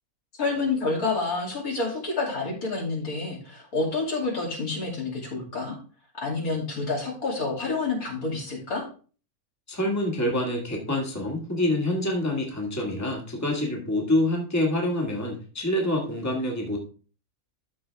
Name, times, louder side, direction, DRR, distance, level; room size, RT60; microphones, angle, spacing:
voice 1, 0.4-5.8 6.2-8.8, left 3 dB, 70° left, -2 dB, 3.1 m, -28 dB
voice 2, 9.7-16.8, left 1 dB, 10° left, 0 dB, 1.8 m, -26 dB
13.0 x 5.0 x 3.4 m, 0.38 s
omnidirectional pair, 1.6 m